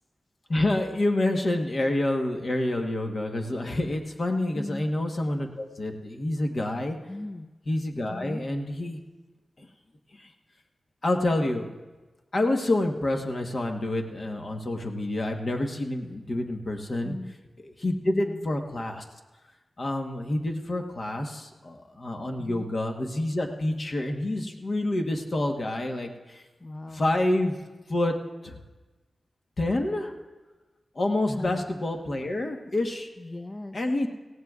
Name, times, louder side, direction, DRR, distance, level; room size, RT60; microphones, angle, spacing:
voice 1, 0.5-7.0 7.6-9.0 9.6-9.7 10.1-10.3 11.0-11.7 12.3-17.2 17.6-19.0 19.8-26.4 26.9-27.6 27.9-28.1 28.4-28.6 29.6-30.1 30.9-33.1 33.7-34.1, left 1 dB, 55° left, 3 dB, 1.3 m, -28 dB
voice 2, 4.5-4.9 7.1-7.5 8.1-8.4 17.0-17.3 18.2-18.4 22.4-22.7 26.6-27.0 31.3-31.6 33.2-33.7, left 2 dB, 30° left, 7 dB, 0.5 m, -37 dB
18.5 x 16.0 x 2.4 m, 1.2 s
cardioid pair, 60°, 0 cm